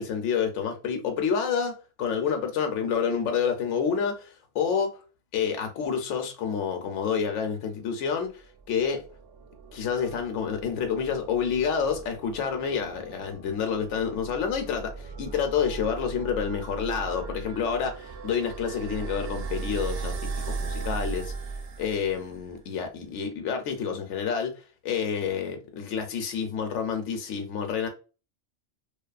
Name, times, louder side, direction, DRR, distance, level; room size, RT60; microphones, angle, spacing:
voice 1, 0.0-4.3 4.5-5.0 5.3-9.0 9.7-20.2 20.5-21.3 21.8-24.5 24.8-27.9, left 6 dB, 80° left, 0.9 m, -28 dB
sound 1, 8.4-22.6, right 4 dB, 80° right, 0.9 m, -38 dB
2.5 x 2.4 x 2.2 m
omnidirectional pair, 1.2 m